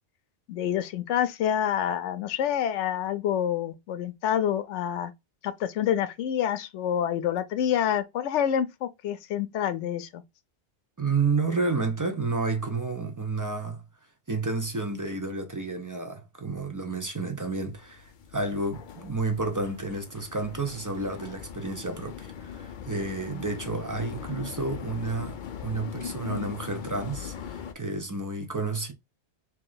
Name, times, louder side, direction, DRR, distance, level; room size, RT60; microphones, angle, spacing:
voice 1, 0.5-5.1 5.4-10.2, left 9 dB, 90° left, 0.9 m, -27 dB
voice 2, 11.0-13.8 14.3-28.9, right 3 dB, 20° right, 0.5 m, -30 dB
sound 1, 17.7-27.7, left 8 dB, 55° left, 0.6 m, -40 dB
3.0 x 3.0 x 3.8 m
omnidirectional pair, 1.2 m